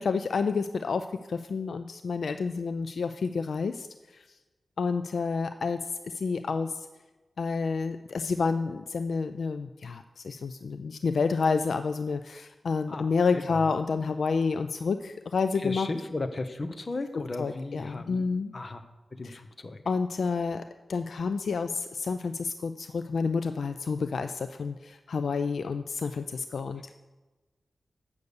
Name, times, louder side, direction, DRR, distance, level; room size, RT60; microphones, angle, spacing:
voice 1, 0.0-3.9 4.8-5.8 6.1-6.7 7.4-15.9 17.4-18.5 19.2-19.4 19.9-20.6 20.9-26.9, left 4 dB, 80° left, 9 dB, 0.3 m, -29 dB
voice 2, 12.9-13.7 15.6-18.3 18.5-18.8 19.1-19.8, left 2 dB, 45° left, 9 dB, 0.8 m, -35 dB
8.1 x 6.5 x 7.0 m, 1.2 s
wide cardioid pair, 75°, 0 cm